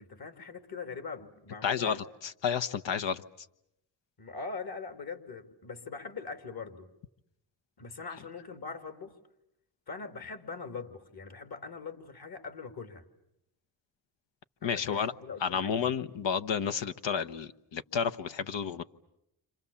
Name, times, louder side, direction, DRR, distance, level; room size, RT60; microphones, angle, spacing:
voice 1, 0.0-2.0 4.2-6.9 7.8-9.2 9.9-13.0 14.6-15.9, left 4 dB, 50° left, 7 dB, 3.0 m, -42 dB
voice 2, 1.6-3.2 14.6-15.1 15.4-18.8, left 7 dB, 65° left, 9 dB, 1.2 m, -31 dB
30.0 x 26.5 x 7.2 m, 0.83 s
supercardioid pair, 55°, 47 cm